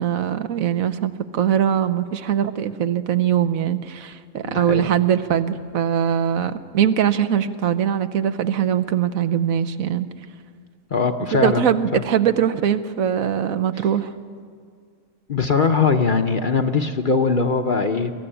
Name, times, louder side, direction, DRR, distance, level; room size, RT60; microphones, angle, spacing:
voice 1, 0.0-10.1 11.3-14.1, right 9 dB, 75° right, 11 dB, 1.2 m, -21 dB
voice 2, 4.4-4.9 10.9-12.0 15.3-18.1, left 4 dB, 45° left, 6 dB, 0.8 m, -21 dB
22.5 x 14.5 x 10.0 m, 2.1 s
omnidirectional pair, 1.5 m